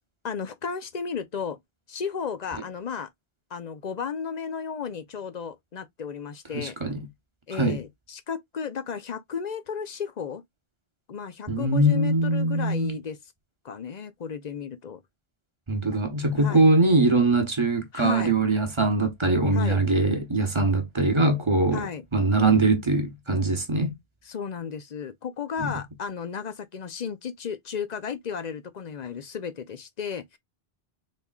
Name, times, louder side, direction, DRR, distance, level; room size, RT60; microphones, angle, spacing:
voice 1, 0.2-1.6 1.9-3.1 3.5-6.8 7.5-10.4 11.1-13.2 13.6-15.0 16.3-16.6 17.9-18.4 19.5-19.8 21.7-22.0 24.3-30.4, left 6 dB, 50° left, 0.6 m, -34 dB
voice 2, 6.5-7.0 7.5-7.8 11.5-13.0 15.7-21.9 22.1-24.0 25.6-25.8, right 2 dB, 30° right, 1.0 m, -22 dB
4.2 x 3.5 x 2.3 m
omnidirectional pair, 1.1 m